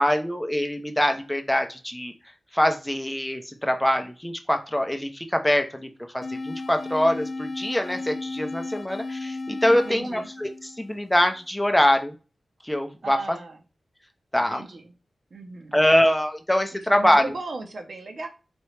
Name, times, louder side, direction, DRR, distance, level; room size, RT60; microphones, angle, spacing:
voice 1, 0.0-2.1 2.5-5.9 6.1-10.5 10.8-12.1 12.6-13.2 14.3-14.6 15.7-17.3, left 1 dB, 5° left, 5 dB, 0.6 m, -23 dB
sound 1, 6.2-11.3, left 3 dB, 50° left, 0.3 m, -35 dB
voice 2, 9.7-10.3 13.0-13.6 14.3-14.9 15.3-15.8 16.7-18.3, right 3 dB, 60° right, 4 dB, 0.8 m, -37 dB
4.3 x 2.9 x 3.2 m, 0.32 s
wide cardioid pair, 125°, 0 cm